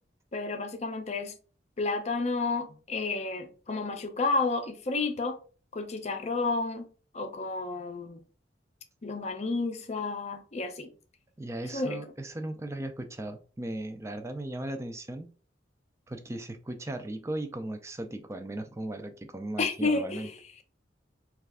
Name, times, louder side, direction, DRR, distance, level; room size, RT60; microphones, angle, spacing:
voice 1, 0.3-1.3 1.8-5.4 5.7-6.9 7.1-8.2 9.0-10.9 11.7-12.0 19.6-20.2, left 3 dB, 35° left, 0.5 m, -31 dB
voice 2, 11.4-15.3 16.1-20.3, right 1 dB, 15° right, 0.4 m, -37 dB
3.1 x 2.4 x 3.5 m
head